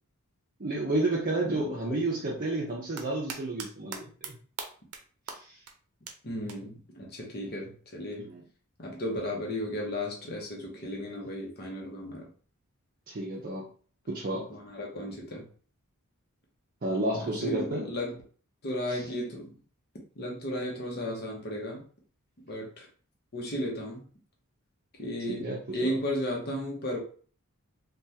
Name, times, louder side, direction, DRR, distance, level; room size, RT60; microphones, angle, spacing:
voice 1, 0.6-4.3 5.3-5.6 8.3-8.4 13.1-13.6 14.1-14.4 16.8-17.9 25.3-26.0, right 2 dB, 40° right, -4 dB, 0.6 m, -31 dB
voice 2, 1.4-2.0 6.2-8.3 8.8-12.3 14.5-15.5 17.2-18.2 18.6-19.5 20.2-21.8 22.5-22.9 23.3-24.0 25.0-27.0, left 1 dB, 45° left, -1 dB, 0.8 m, -34 dB
sound 1, 2.7-3.7 3.9-4.3 4.6-5.0 5.3-5.4 5.7-5.8 6.1-6.2 6.5-6.6 8.1-8.2, right 6 dB, 85° right, 0.6 m, -38 dB
3.4 x 2.3 x 2.7 m, 0.42 s
head